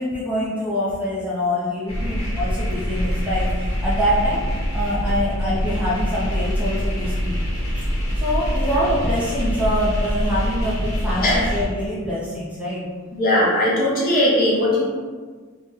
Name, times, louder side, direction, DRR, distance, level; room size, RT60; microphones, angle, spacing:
voice 1, 0.0-4.4 4.7-7.4 7.8-7.9 8.2-12.8, equal, 5° right, -9 dB, 0.5 m, -25 dB
sound 1, 1.9-11.7, equal, 80° left, 1.0 m, -24 dB
voice 2, 13.1-14.8, left 1 dB, 40° left, -5 dB, 0.7 m, -18 dB
2.7 x 2.1 x 3.5 m, 1.5 s
head